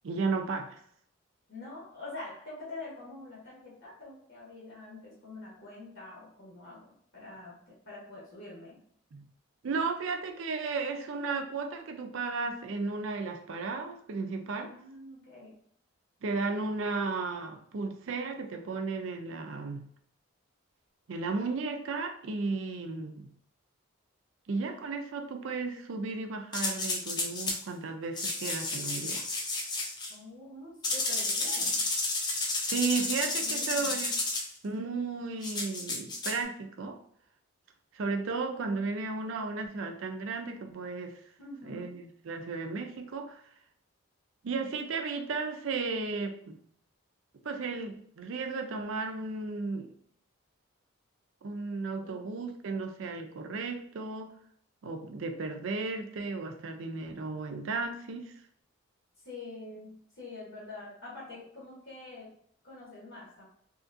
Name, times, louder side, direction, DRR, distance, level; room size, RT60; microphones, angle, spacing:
voice 1, 0.0-0.8 9.1-9.2 9.6-14.7 16.2-19.9 21.1-23.3 24.5-29.3 32.7-34.1 34.6-37.0 37.9-41.2 41.6-43.4 44.4-46.6 47.4-49.9 51.4-54.3 54.8-58.3, right 4 dB, 65° right, 5 dB, 0.4 m, -34 dB
voice 2, 1.5-8.8 14.5-15.6 30.1-31.8 33.4-34.1 41.4-41.9 52.0-52.2 59.2-62.3 62.6-63.4, left 2 dB, 60° left, -6 dB, 0.9 m, -46 dB
sound 1, 26.5-27.6 28.2-30.1 30.8-34.5 35.4-36.4, left 2 dB, 20° left, 0.3 m, -31 dB
2.7 x 2.6 x 2.5 m, 0.64 s
head